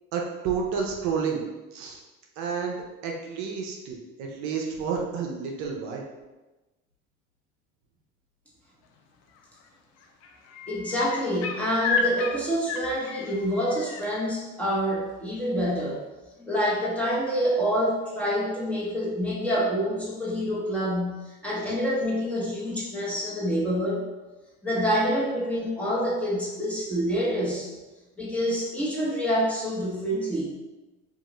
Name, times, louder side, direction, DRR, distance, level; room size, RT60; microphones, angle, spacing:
voice 1, 0.1-1.4 1.7-2.0 2.4-6.1 21.6-21.7, right 6 dB, 65° right, 0 dB, 0.6 m, -30 dB
sound 1, 9.3-9.7 10.0-14.0 15.7-15.8, left 4 dB, 60° left, 0.5 m, -32 dB
voice 2, 10.7-16.0 16.4-24.0 24.6-27.7 28.2-30.5, equal, 5° left, -6 dB, 1.0 m, -27 dB
2.7 x 2.4 x 3.0 m, 1.1 s
supercardioid pair, 85°, 30 cm